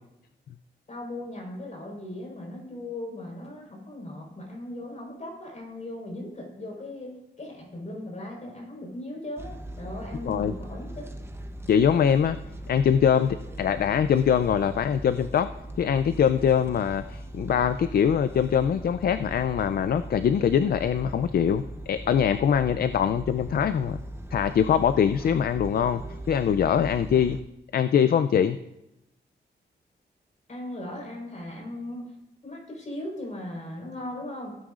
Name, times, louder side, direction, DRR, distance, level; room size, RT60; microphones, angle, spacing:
voice 1, 0.9-10.9 30.5-32.1 32.4-34.6, left 1 dB, 40° left, -2 dB, 4.2 m, -38 dB
sound 1, 9.4-27.4, right 1 dB, 15° right, 0.7 m, -40 dB
voice 2, 11.7-12.4 12.7-15.5 15.8-24.0 24.3-26.0 26.3-27.4 27.7-28.6, left 8 dB, 55° left, 12 dB, 0.4 m, -23 dB
16.5 x 9.2 x 2.5 m, 0.90 s
wide cardioid pair, 135°, 19 cm